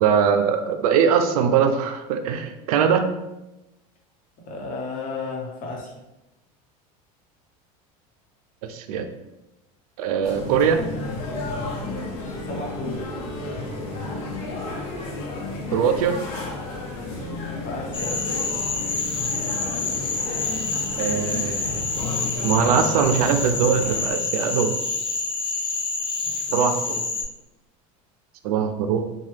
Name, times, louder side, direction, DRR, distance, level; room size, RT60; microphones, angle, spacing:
voice 1, 0.0-3.1 8.6-9.1 10.0-10.8 15.7-16.2 21.0-21.8 22.4-24.7 26.5-27.0 28.4-29.0, right 7 dB, 90° right, 7 dB, 0.4 m, -21 dB
voice 2, 4.4-5.9 12.3-13.0 17.6-18.2 26.2-27.0, left 3 dB, 45° left, -1 dB, 1.0 m, -34 dB
sound 1, 10.2-24.1, left 2 dB, 80° left, 0.8 m, -32 dB
Cricket / Frog, 17.9-27.2, left 4 dB, 30° left, 0.5 m, -27 dB
2.8 x 2.3 x 3.2 m, 0.95 s
supercardioid pair, 115°, 18 cm